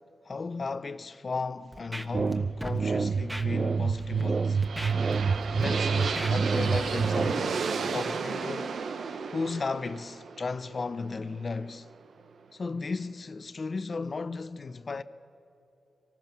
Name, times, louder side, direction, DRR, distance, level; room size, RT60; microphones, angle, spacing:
voice 1, 0.2-4.6 5.5-8.8 9.3-11.9 12.5-15.0, left 4 dB, 45° left, 0.6 m, -35 dB
Scratching (performance technique), 1.7-2.3 2.6-2.8 3.3-3.4 4.0-4.2 4.6-5.6 6.0-6.3 6.8-6.9, equal, 5° right, 1.3 m, -38 dB
sound 1, 2.1-7.3, right 5 dB, 50° right, 0.5 m, -27 dB
sound 2, 4.0-11.9, right 5 dB, 75° right, 0.9 m, -34 dB
25.5 x 19.0 x 5.9 m
cardioid pair, 80°, 0 cm